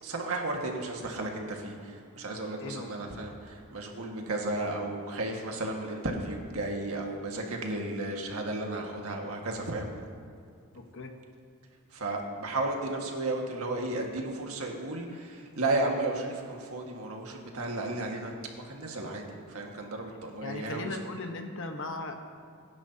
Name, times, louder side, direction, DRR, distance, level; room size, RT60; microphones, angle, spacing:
voice 1, 0.0-9.9 11.9-21.0, right 2 dB, 80° right, 1 dB, 1.7 m, -34 dB
voice 2, 2.6-2.9 10.7-11.1 20.4-22.2, left 2 dB, 60° left, 4 dB, 1.1 m, -37 dB
22.0 x 10.5 x 2.8 m, 2.4 s
head